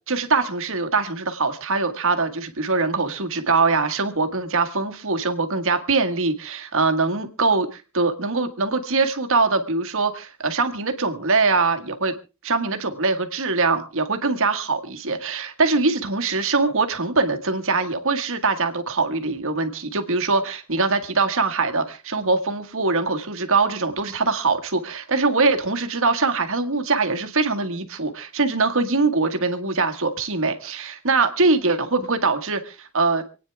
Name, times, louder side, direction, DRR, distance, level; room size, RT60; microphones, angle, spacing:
voice 1, 0.1-12.1 12.4-33.2, right 3 dB, 65° right, 7 dB, 1.8 m, -22 dB
27.5 x 9.4 x 3.5 m, 0.33 s
head